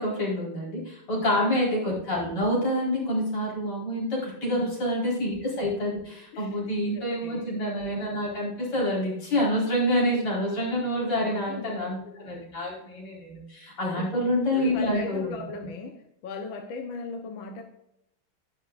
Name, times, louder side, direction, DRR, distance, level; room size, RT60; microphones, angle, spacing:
voice 1, 0.0-15.4, equal, 90° left, -5 dB, 5.6 m, -27 dB
voice 2, 1.1-1.6 4.5-4.7 5.2-5.3 6.1-6.6 6.9-7.5 11.2-11.8 14.0-14.2 14.5-17.6, left 3 dB, 65° left, 4 dB, 1.8 m, -38 dB
11.5 x 10.5 x 2.5 m, 0.78 s
omnidirectional pair, 2.4 m